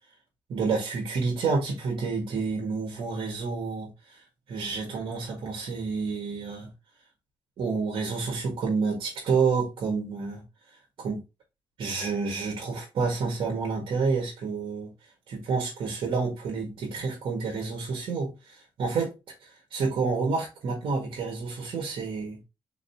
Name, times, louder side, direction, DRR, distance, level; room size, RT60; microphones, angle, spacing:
voice 1, 0.5-4.2 4.5-6.7 7.6-10.4 11.0-11.2 11.8-14.9 15.3-19.1 19.4-22.4, right 4 dB, 80° right, 1.7 m, -29 dB
4.1 x 4.0 x 2.7 m
cardioid pair, 75°, 9 cm